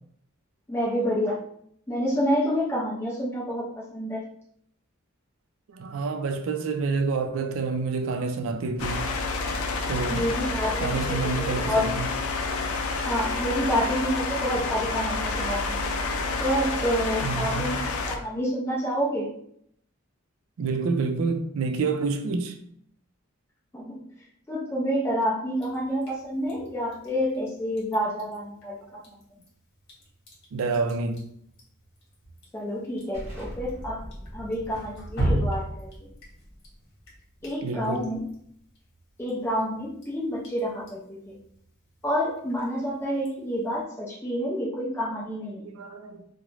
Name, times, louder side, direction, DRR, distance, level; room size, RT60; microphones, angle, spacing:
voice 1, 0.7-1.4 1.9-4.2 10.1-11.9 13.0-16.0 16.4-19.3 23.7-24.0 24.5-29.0 32.5-34.0 34.3-35.9 37.4-38.2 39.2-41.4 42.0-45.7, equal, 10° left, 0.4 m, -28 dB
voice 2, 5.7-9.0 9.9-10.3 10.8-12.1 17.2-17.8 20.6-22.6 30.5-31.2 37.6-38.1 45.6-46.2, right 4 dB, 70° right, 0.4 m, -28 dB
sound 1, 8.8-18.2, left 3 dB, 80° left, 0.4 m, -29 dB
Drip, 25.6-43.8, right 1 dB, 55° left, 1.0 m, -38 dB
Explosion, 33.1-38.5, equal, 15° right, 0.8 m, -43 dB
2.4 x 2.1 x 3.1 m
head